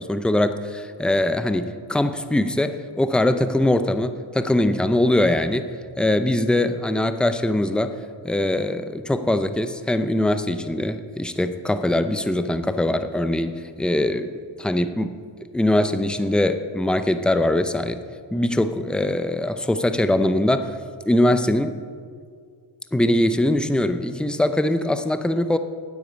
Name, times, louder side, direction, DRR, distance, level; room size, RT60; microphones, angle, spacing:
voice 1, 0.0-5.7 6.0-8.0 8.2-14.3 14.6-15.1 15.5-18.0 18.3-20.8 21.1-21.7 22.9-25.6, left 1 dB, ahead, 10 dB, 0.6 m, -22 dB
9.3 x 8.6 x 8.5 m, 2.1 s
cardioid pair, 90°, 47 cm